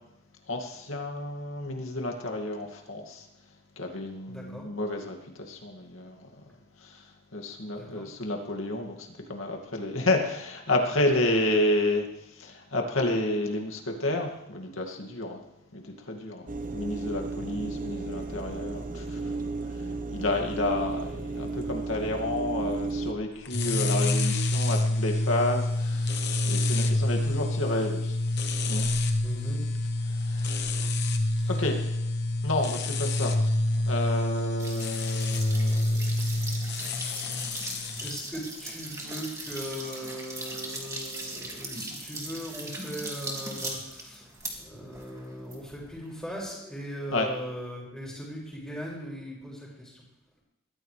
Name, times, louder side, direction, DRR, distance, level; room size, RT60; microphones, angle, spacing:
voice 1, 0.5-3.3 3.8-6.3 6.8-12.1 12.3-15.4 15.7-16.5 16.7-19.4 20.1-28.2 28.7-28.9 30.2-30.8 31.5-31.8 32.4-33.4 33.7-36.0 47.1-47.3, left 1 dB, 75° left, 2 dB, 2.4 m, -30 dB
voice 2, 4.3-4.7 7.7-8.1 17.5-17.7 29.2-29.6 30.8-30.9 38.0-44.3 44.6-50.0, equal, 5° left, -4 dB, 6.1 m, -39 dB
sound 1, 16.5-23.1, right 3 dB, 40° right, 1.2 m, -34 dB
sound 2, 23.5-38.2, left 2 dB, 55° left, 1.0 m, -27 dB
sound 3, 34.6-46.2, right 2 dB, 15° right, 2.3 m, -39 dB
22.0 x 14.5 x 3.4 m, 0.86 s
head